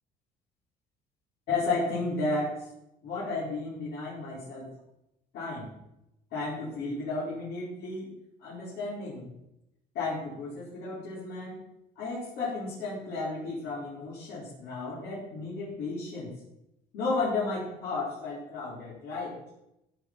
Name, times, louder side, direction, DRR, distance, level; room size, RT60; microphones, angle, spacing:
voice 1, 1.5-2.7 3.0-4.7 5.3-5.7 6.3-8.1 8.4-9.3 9.9-11.6 12.0-16.3 16.9-19.4, left 3 dB, 80° left, -8 dB, 4.6 m, -33 dB
15.0 x 6.0 x 6.1 m, 0.84 s
cardioid pair, 110°, 17 cm